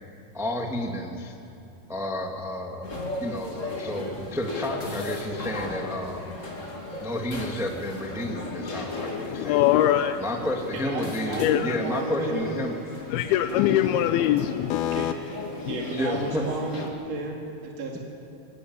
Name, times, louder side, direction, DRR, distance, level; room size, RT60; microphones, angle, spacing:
voice 1, 0.3-1.3 1.9-2.9 3.2-6.3 7.0-9.6 10.2-12.7 15.9-16.5, left 1 dB, 5° right, 1 dB, 0.6 m, -31 dB
sound 1, 2.8-16.9, left 2 dB, 25° left, 2.3 m, -37 dB
voice 2, 8.4-10.2 11.4-11.8 13.1-15.1 15.6-15.8, left 12 dB, 85° left, 9 dB, 2.6 m, -23 dB
voice 3, 10.7-12.5 14.9-16.8 17.1-18.0, right 2 dB, 45° right, -1 dB, 3.4 m, -33 dB
23.0 x 18.0 x 9.5 m, 2.6 s
omnidirectional pair, 4.3 m